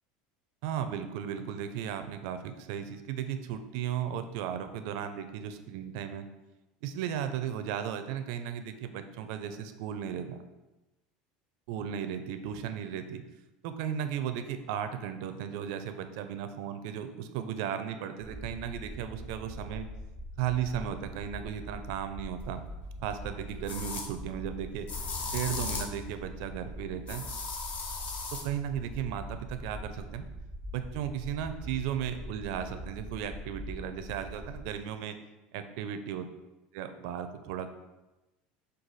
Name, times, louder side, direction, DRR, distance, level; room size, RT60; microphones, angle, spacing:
voice 1, 0.6-6.2 6.8-10.4 11.7-13.2 13.6-19.9 20.4-22.6 23.0-24.9 25.3-27.3 28.3-30.3 30.7-35.1 35.5-36.3 36.7-37.7, right 9 dB, 70° right, 9 dB, 0.4 m, -35 dB
sound 1, 18.2-34.7, equal, 5° left, 1.2 m, -43 dB
Freshener spray, 22.5-22.6 23.7-24.1 24.9-26.0 27.1-28.5, left 4 dB, 40° left, 0.6 m, -36 dB
4.7 x 2.3 x 4.0 m, 1.1 s
supercardioid pair, 135°, 4 cm